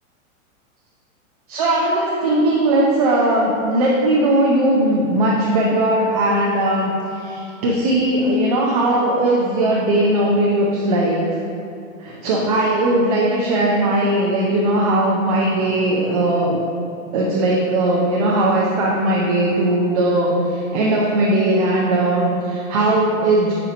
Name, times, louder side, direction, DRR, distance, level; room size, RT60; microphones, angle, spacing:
voice 1, 1.5-11.2 12.0-16.6 17.1-23.5, right 1 dB, 30° right, -3 dB, 0.4 m, -18 dB
5.0 x 4.4 x 4.9 m, 2.7 s
supercardioid pair, 165°, 41 cm